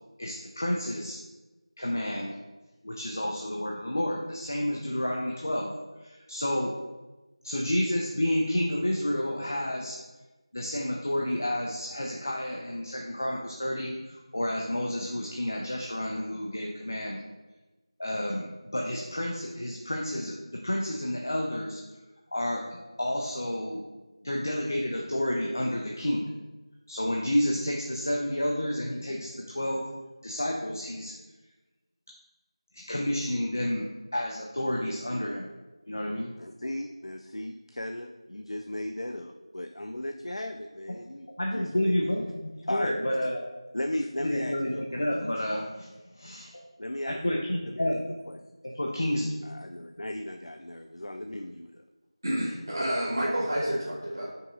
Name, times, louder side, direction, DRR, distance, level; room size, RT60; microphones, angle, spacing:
voice 1, 0.2-1.2 1.8-2.3 2.8-5.7 6.0-6.7 7.4-10.0 10.5-17.2 18.0-21.8 22.3-23.8 24.2-26.3 26.9-29.8 30.2-31.1 32.7-35.5 35.9-36.3 41.4-43.5 44.2-46.6 47.1-48.0 48.6-49.3, left 1 dB, 35° left, -1 dB, 0.6 m, -30 dB
voice 2, 36.4-41.3 41.5-41.9 42.6-42.9 43.7-45.1 46.8-47.4 47.7-47.9 48.3-48.4 49.4-51.8, left 1 dB, 90° left, 5 dB, 0.4 m, -36 dB
voice 3, 52.2-54.3, equal, 30° right, -9 dB, 1.0 m, -29 dB
5.5 x 3.5 x 5.3 m, 1.1 s
figure-of-eight pair, 175°, 3 cm